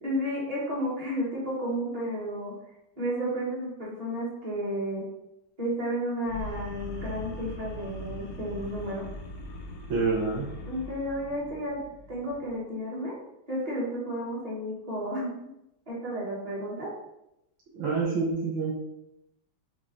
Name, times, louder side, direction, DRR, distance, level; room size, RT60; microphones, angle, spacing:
voice 1, 0.0-2.5 3.0-5.0 5.6-9.0 10.7-11.8 12.1-13.1 13.5-15.3 15.9-16.9, equal, 20° right, -6 dB, 1.2 m, -32 dB
sound 1, 6.3-12.5, left 1 dB, 80° left, 1.5 m, -41 dB
voice 2, 9.9-10.5 17.7-18.7, right 4 dB, 90° right, -5 dB, 1.7 m, -27 dB
5.8 x 2.1 x 3.8 m, 0.86 s
omnidirectional pair, 2.1 m